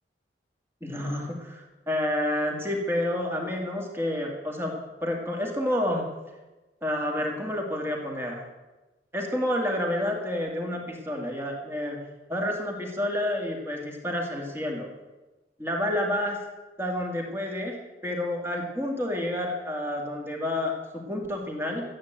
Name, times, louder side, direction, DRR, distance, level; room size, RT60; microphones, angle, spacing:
voice 1, 0.8-4.7 5.0-6.0 6.8-8.4 9.1-12.0 12.3-14.9 15.6-16.4 16.8-17.8 18.0-21.8, left 1 dB, 15° right, 1 dB, 2.2 m, -29 dB
13.0 x 8.9 x 8.0 m, 1.1 s
head